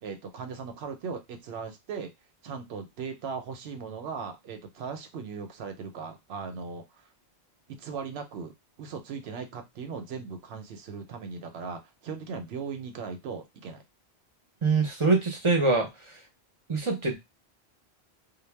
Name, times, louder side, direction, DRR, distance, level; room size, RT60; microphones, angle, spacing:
voice 1, 0.0-2.1 2.4-6.8 7.7-13.8, right 5 dB, 75° right, 6 dB, 0.8 m, -38 dB
voice 2, 14.6-16.2 16.7-17.1, right 3 dB, 40° right, 1 dB, 0.5 m, -24 dB
2.1 x 2.0 x 3.2 m, 0.20 s
omnidirectional pair, 1.1 m